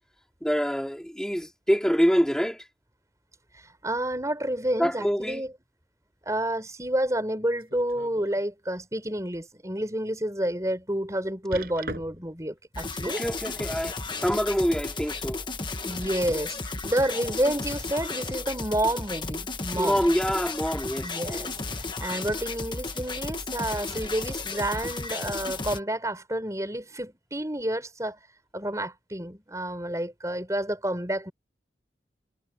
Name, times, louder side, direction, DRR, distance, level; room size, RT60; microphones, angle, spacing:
voice 1, 0.4-2.6 4.8-5.4 13.0-15.4 19.7-21.5, equal, 5° left, 3.4 m, -26 dB
voice 2, 3.5-5.5 6.2-13.2 15.8-20.1 21.0-21.5 21.8-28.2 28.5-31.3, right 1 dB, 15° right, 5.9 m, -29 dB
sound 1, 7.6-8.4 8.9-9.1 9.6-9.7 11.5-12.4 13.8-14.5 15.4-15.5, right 2 dB, 55° right, 6.0 m, -40 dB
sound 2, 12.7-25.8, left 3 dB, 25° left, 1.3 m, -34 dB
head